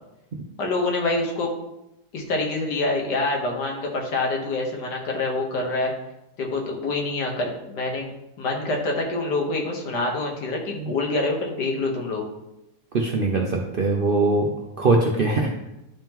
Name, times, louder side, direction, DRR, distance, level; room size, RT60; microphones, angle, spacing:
voice 1, 0.6-1.5 2.1-5.9 6.4-8.1 8.4-12.2, left 2 dB, 85° left, 0 dB, 1.8 m, -26 dB
voice 2, 12.9-15.7, right 3 dB, 85° right, 1 dB, 0.4 m, -22 dB
11.0 x 3.7 x 3.0 m, 0.91 s
omnidirectional pair, 1.8 m